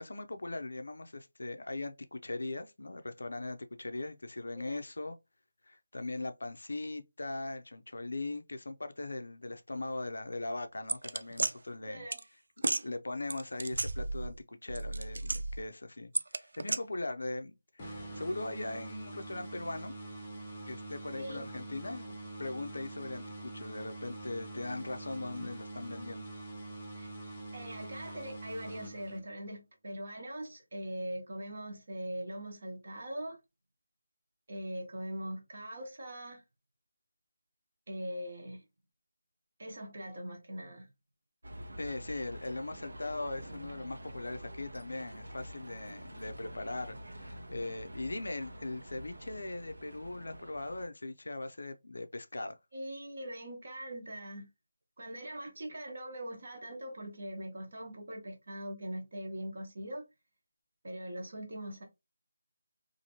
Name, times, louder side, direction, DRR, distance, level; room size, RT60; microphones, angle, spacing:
voice 1, 0.0-5.2 5.7-12.1 12.8-16.1 16.5-19.9 20.7-26.3 41.8-52.6, left 2 dB, 65° left, 0.5 m, -40 dB
sound 1, 10.9-11.5 12.1-12.2 12.6-12.8 13.3-14.4 14.7-15.7 16.1-16.8, right 2 dB, 65° right, 0.3 m, -33 dB
voice 2, 11.9-12.2 21.2-21.4 25.4-25.5 27.0-27.1 27.5-33.4 34.5-36.4 37.9-38.6 39.6-40.9 52.7-54.5 55.0-60.0 60.8-61.8, right 1 dB, 40° right, 0.9 m, -41 dB
sound 2, 17.8-29.5, right 2 dB, 15° left, 0.7 m, -45 dB
sound 3, 41.4-50.9, equal, 85° right, 0.9 m, -47 dB
2.8 x 2.6 x 2.8 m
figure-of-eight pair, 180°, 0 cm